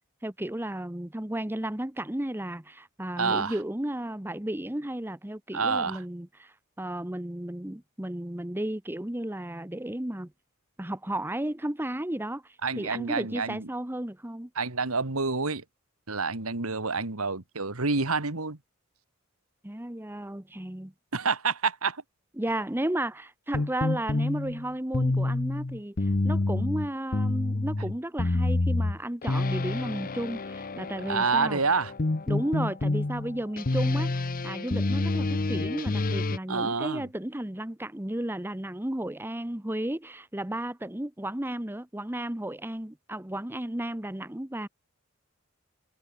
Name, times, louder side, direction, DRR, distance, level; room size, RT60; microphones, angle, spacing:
voice 1, 0.2-10.3 10.8-14.5 19.6-20.9 22.4-31.6 32.3-44.7, right 1 dB, 10° right, 1.0 m, -33 dB
voice 2, 3.2-3.6 5.5-6.0 12.6-13.7 14.6-15.6 16.1-18.6 21.1-22.0 23.6-23.7 31.1-31.9 36.5-37.1, right 4 dB, 85° right, 2.2 m, -28 dB
sound 1, 23.5-36.4, left 2 dB, 40° left, 0.8 m, -28 dB
head